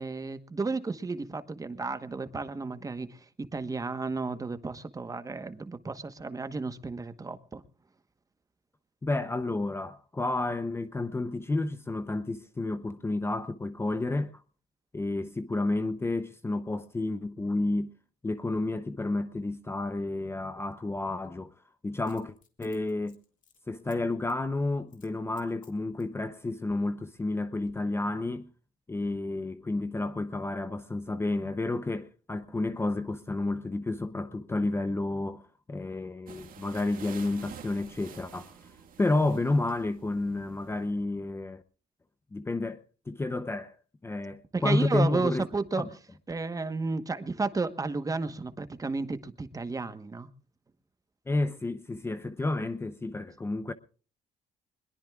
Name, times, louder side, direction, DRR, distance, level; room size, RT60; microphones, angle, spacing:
voice 1, 0.0-7.6 44.5-45.9 46.3-50.3, right 3 dB, 20° right, 1.2 m, -32 dB
voice 2, 9.0-14.4 14.9-17.9 18.2-23.2 23.7-28.5 28.9-41.6 42.3-43.8 44.0-45.4 45.8-45.9 51.3-53.7, left 2 dB, 15° left, 0.7 m, -31 dB
Coin (dropping), 22.0-24.0 24.3-24.5 24.9-25.1 25.4-26.2 26.8-27.3 27.6-27.7, left 7 dB, 50° left, 2.6 m, -61 dB
sound 1, 36.3-40.9, right 7 dB, 55° right, 1.9 m, -49 dB
22.0 x 21.5 x 2.4 m
cardioid pair, 110°, 17 cm